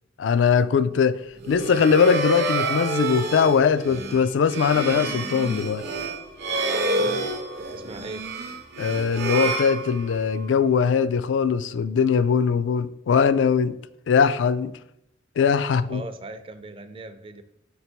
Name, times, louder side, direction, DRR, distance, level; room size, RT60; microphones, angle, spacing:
voice 1, 0.2-1.2 1.5-5.8 8.8-13.8 14.1-14.7 15.4-16.0, left 6 dB, 70° left, 0.3 m, -21 dB
sound 1, 1.4-10.4, right 3 dB, 60° right, 0.7 m, -28 dB
voice 2, 7.6-8.3 15.8-17.4, right 2 dB, 30° right, 0.5 m, -39 dB
5.3 x 4.4 x 4.4 m
head